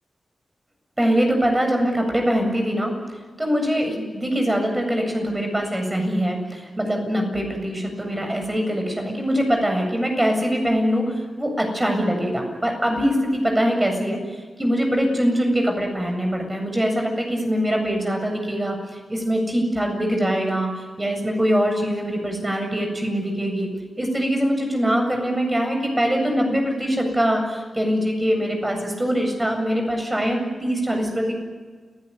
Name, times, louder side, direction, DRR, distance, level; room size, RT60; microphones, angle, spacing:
voice 1, 1.0-2.9 3.4-23.7 24.0-31.3, equal, 20° right, 3 dB, 7.8 m, -23 dB
29.0 x 17.5 x 9.9 m, 1.4 s
wide cardioid pair, 90°, 0 cm